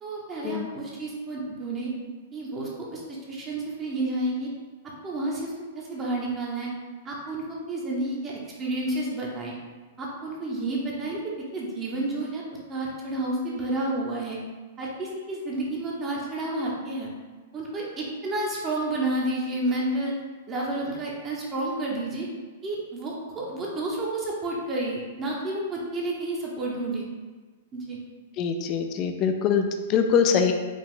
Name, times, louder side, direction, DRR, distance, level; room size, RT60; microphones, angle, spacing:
voice 1, 0.0-1.9 2.3-3.0 3.3-4.5 5.0-6.7 7.0-9.6 10.0-12.4 12.7-14.4 14.8-17.1 17.5-20.1 20.5-22.3 22.6-27.1 27.7-28.0, right 2 dB, 20° right, -3 dB, 0.8 m, -30 dB
voice 2, 28.4-30.5, left 6 dB, 35° left, 5 dB, 0.4 m, -23 dB
4.8 x 2.4 x 3.7 m, 1.4 s
hypercardioid pair, 145°, 0 cm